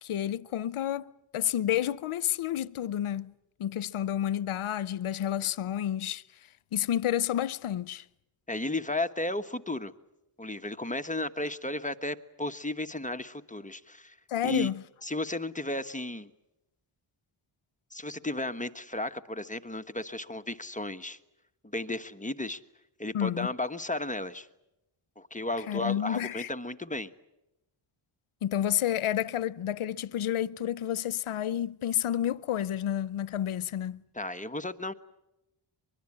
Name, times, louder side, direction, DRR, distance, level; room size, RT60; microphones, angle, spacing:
voice 1, 0.0-3.3 3.6-6.2 6.7-8.0 14.3-14.8 23.1-23.5 25.7-26.5 28.4-34.0, left 11 dB, 80° left, 0.8 m, -30 dB
voice 2, 8.5-9.9 10.4-14.1 14.4-14.7 15.0-16.3 17.9-21.2 21.6-22.6 23.0-24.5 25.2-27.1 34.1-34.9, left 2 dB, 15° left, 1.4 m, -34 dB
24.0 x 22.5 x 8.7 m
cardioid pair, 65°, 50 cm